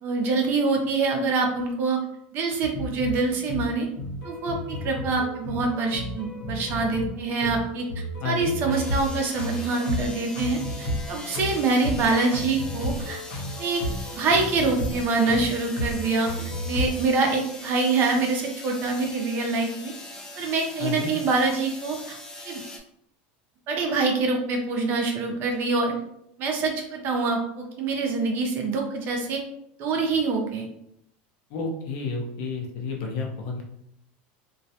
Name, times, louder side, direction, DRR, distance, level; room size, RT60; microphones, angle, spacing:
voice 1, 0.0-2.0 2.3-3.9 4.2-7.9 8.2-13.2 13.6-13.8 14.1-16.3 16.7-19.9 20.4-22.2 22.5-22.6 23.7-26.0 26.4-29.4 29.8-30.6, right 3 dB, 40° right, 2 dB, 0.5 m, -25 dB
sound 1, 2.6-16.9, left 1 dB, 85° left, 0.9 m, -33 dB
voice 2, 8.2-8.5 20.8-21.1 31.5-33.6, left 4 dB, 55° left, 0 dB, 0.6 m, -31 dB
sound 2, 8.7-22.8, left 1 dB, 10° left, 0.4 m, -41 dB
2.2 x 2.1 x 2.8 m, 0.75 s
supercardioid pair, 140°, 5 cm